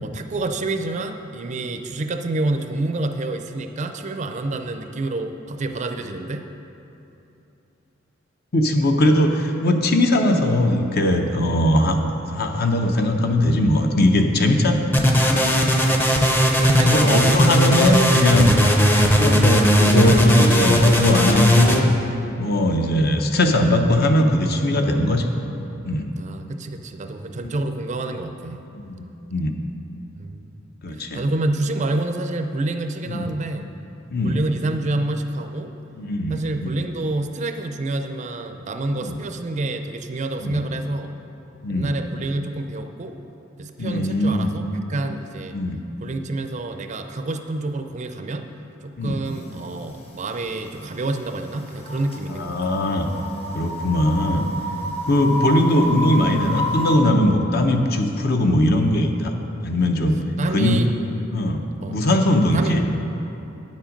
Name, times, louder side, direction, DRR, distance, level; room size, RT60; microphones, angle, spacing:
voice 1, 0.0-6.5 15.8-18.4 26.2-28.6 30.2-30.6 31.1-33.6 34.2-35.7 36.3-41.1 41.7-43.2 43.6-44.6 44.9-45.6 46.0-48.5 48.8-52.6 60.4-60.9 61.8-62.0 62.5-62.8, right 2 dB, 35° right, 7 dB, 0.5 m, -28 dB
voice 2, 8.5-12.0 12.3-14.9 15.3-15.5 16.9-18.5 19.1-21.8 22.4-25.2 25.8-26.1 28.7-29.0 29.3-29.5 30.8-31.2 33.1-33.3 34.1-34.4 36.0-36.7 38.9-39.2 40.4-40.6 41.6-41.9 43.8-44.5 45.5-45.8 49.0-49.2 52.3-53.1 53.5-54.5 55.0-59.3 59.6-60.2 60.5-60.8 61.3-61.6 61.9-62.8, left 1 dB, 55° left, 4 dB, 0.7 m, -20 dB
sound 1, 14.9-21.8, equal, 10° left, 0.6 m, -17 dB
sound 2, 49.3-49.4 50.5-50.7 51.1-57.0, equal, 30° left, 1.2 m, -30 dB
9.3 x 7.4 x 5.2 m, 2.9 s
head